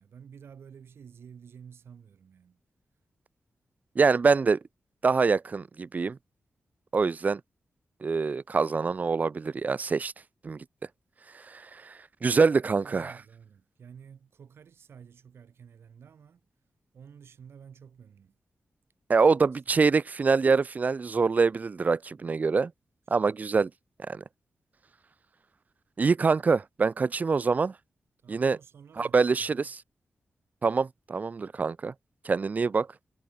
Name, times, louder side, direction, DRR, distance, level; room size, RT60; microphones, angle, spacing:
voice 1, 0.0-2.6 12.6-16.5 16.9-18.4 28.2-29.6, right 7 dB, 80° right, 6.1 m, -51 dB
voice 2, 4.0-4.6 5.0-6.2 6.9-7.4 8.0-10.1 10.4-10.6 11.5-11.9 12.2-13.1 19.1-22.7 23.1-23.7 24.1-24.2 26.0-27.7 28.3-28.6 29.0-29.7 30.6-31.9 32.2-32.9, right 4 dB, 40° right, 0.6 m, -25 dB
wide cardioid pair, 100°, 4 cm